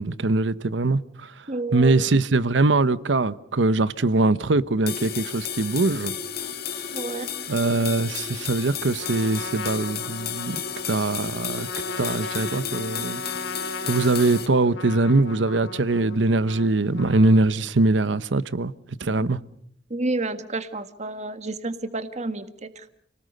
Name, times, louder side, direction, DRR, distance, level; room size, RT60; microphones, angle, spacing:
voice 1, 0.0-1.3 1.7-6.1 7.5-10.6 10.9-11.7 12.0-13.2 13.8-18.7 19.0-19.4, right 2 dB, 80° right, 0.9 m, -22 dB
voice 2, 1.5-2.0 6.9-7.3 19.2-19.3 19.9-22.9, right 2 dB, 40° right, 1.6 m, -30 dB
sound 1, 4.9-14.5, left 7 dB, 60° left, 2.1 m, -33 dB
Trumpet, 9.0-17.7, left 3 dB, 85° left, 2.1 m, -37 dB
30.0 x 19.0 x 6.6 m
head